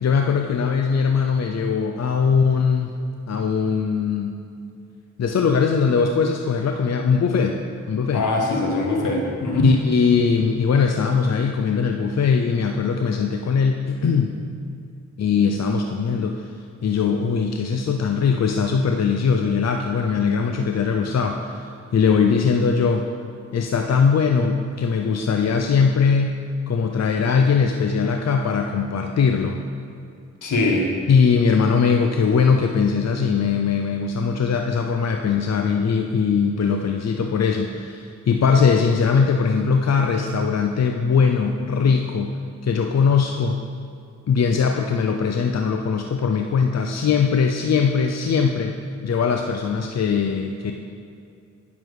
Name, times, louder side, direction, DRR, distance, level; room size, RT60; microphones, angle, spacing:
voice 1, 0.0-2.9 3.3-4.3 5.2-7.6 7.9-8.3 9.6-14.4 15.2-16.4 16.8-21.6 21.9-23.1 23.5-26.4 26.7-29.6 31.1-42.3 42.6-43.6 44.3-48.7 49.0-50.7, left 5 dB, 60° left, 4 dB, 0.6 m, -20 dB
voice 2, 8.1-9.7 30.4-30.9, left 2 dB, 85° left, -1 dB, 1.6 m, -22 dB
9.3 x 7.3 x 4.8 m, 2.5 s
cardioid pair, 50°, 30 cm